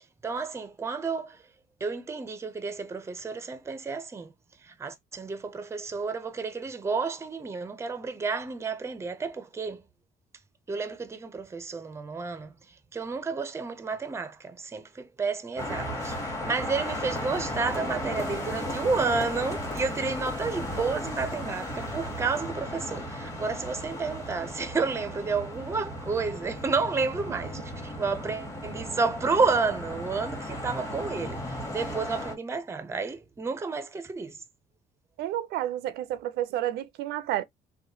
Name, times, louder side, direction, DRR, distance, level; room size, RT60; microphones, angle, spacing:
voice 1, 0.2-1.4 1.8-4.3 4.6-9.8 10.7-34.4, right 4 dB, 15° right, 0.5 m, -31 dB
sound 1, 15.6-32.3, left 1 dB, 15° left, 1.2 m, -35 dB
voice 2, 35.2-37.4, right 13 dB, 80° right, 0.4 m, -30 dB
3.0 x 2.2 x 2.7 m
cardioid pair, 110°, 17 cm